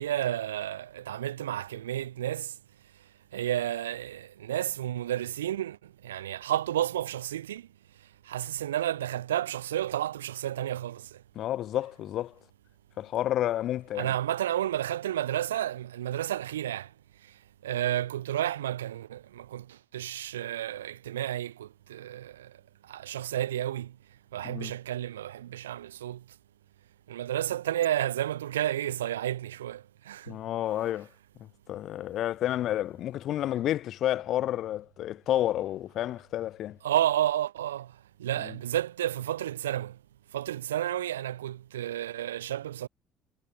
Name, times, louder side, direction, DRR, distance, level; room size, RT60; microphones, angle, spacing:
voice 1, 0.0-2.5 3.3-7.7 8.3-11.2 13.9-16.9 17.6-22.5 22.9-23.9 24.3-26.2 27.1-30.4 36.8-37.9 38.2-40.0 40.3-42.9, right 12 dB, 75° right, 0.5 m, -31 dB
voice 2, 11.4-12.3 13.0-14.1 24.4-24.7 30.3-31.1 31.7-36.8 38.4-38.5, left 12 dB, 50° left, 0.8 m, -30 dB
figure-of-eight pair, 55°, 0 cm